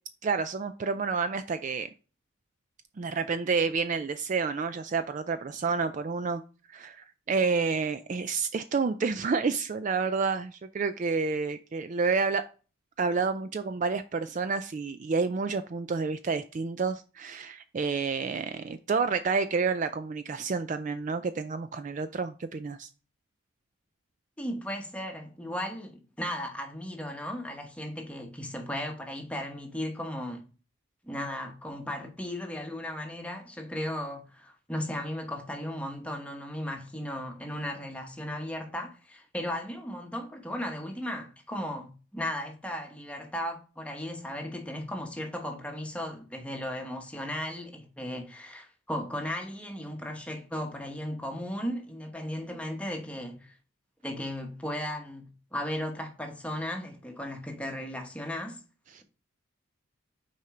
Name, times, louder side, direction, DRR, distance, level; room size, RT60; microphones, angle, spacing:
voice 1, 0.2-1.9 3.0-6.4 6.7-12.4 13.0-22.9 58.9-59.0, right 4 dB, 35° right, 0.3 m, -29 dB
voice 2, 24.4-30.4 31.0-53.5 54.0-58.6, left 1 dB, 5° left, 1.0 m, -36 dB
6.2 x 4.4 x 3.7 m
head